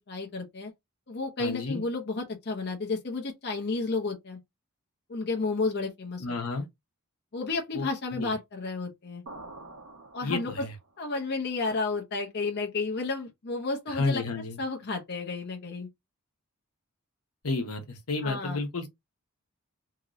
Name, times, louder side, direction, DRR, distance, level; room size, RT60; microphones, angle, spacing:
voice 1, 0.1-0.7 1.1-4.4 5.1-6.2 6.5-6.7 7.3-9.2 10.1-10.7 11.0-14.2 14.6-15.9 18.2-18.6, left 3 dB, 50° left, 0.7 m, -32 dB
voice 2, 1.4-1.8 6.2-6.6 7.7-7.9 8.1-8.3 10.2-10.7 13.9-14.6 17.4-18.9, left 3 dB, 80° left, 0.9 m, -31 dB
sound 1, 9.3-11.0, right 2 dB, 75° right, 0.9 m, -46 dB
2.9 x 2.5 x 3.0 m
head